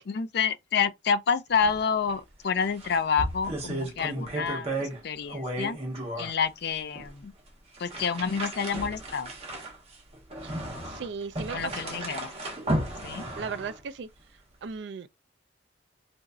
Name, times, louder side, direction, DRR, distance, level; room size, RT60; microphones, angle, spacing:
voice 1, 0.1-5.8 6.2-7.3 7.8-9.3 11.5-12.3 13.0-13.2, left 6 dB, 60° left, 0.4 m, -28 dB
sound 1, 1.5-1.8 2.1-2.2 2.6-5.0 5.3-6.3 7.0-7.1 7.7-13.8, right 1 dB, 35° right, 1.1 m, -34 dB
voice 2, 10.4-12.1 13.4-14.1 14.6-15.1, right 5 dB, 65° right, 0.4 m, -37 dB
3.9 x 2.6 x 2.3 m
head